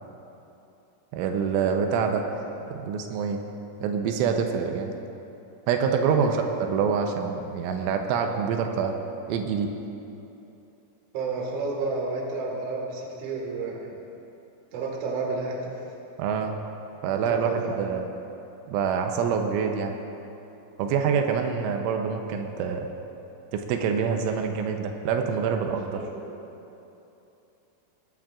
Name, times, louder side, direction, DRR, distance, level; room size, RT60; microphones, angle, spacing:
voice 1, 1.1-2.2 2.7-3.4 3.8-4.9 5.7-6.4 6.7-8.9 9.3-9.7 16.2-16.6 17.0-18.1 18.7-20.0 20.8-22.9 23.5-26.0, right 6 dB, 90° right, 4 dB, 3.2 m, -26 dB
voice 2, 11.1-14.0 14.7-15.7 17.1-17.8 25.5-25.6 25.9-26.3, right 3 dB, 55° right, -2 dB, 2.3 m, -31 dB
21.0 x 12.0 x 2.5 m, 2.9 s
omnidirectional pair, 5.5 m